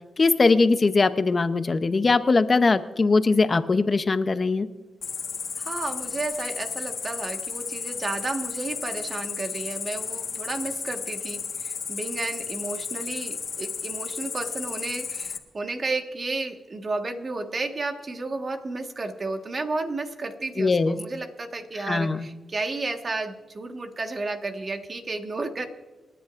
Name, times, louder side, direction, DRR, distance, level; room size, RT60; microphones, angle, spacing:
voice 1, 0.2-4.7 20.6-21.0 21.9-22.3, left 3 dB, 40° left, 11 dB, 0.7 m, -21 dB
Cricket, 5.0-15.4, left 6 dB, 60° left, 1.4 m, -33 dB
voice 2, 5.6-25.7, right 3 dB, 40° right, 5 dB, 1.5 m, -32 dB
28.5 x 10.0 x 2.5 m, 1.3 s
cardioid pair, 85°, 0 cm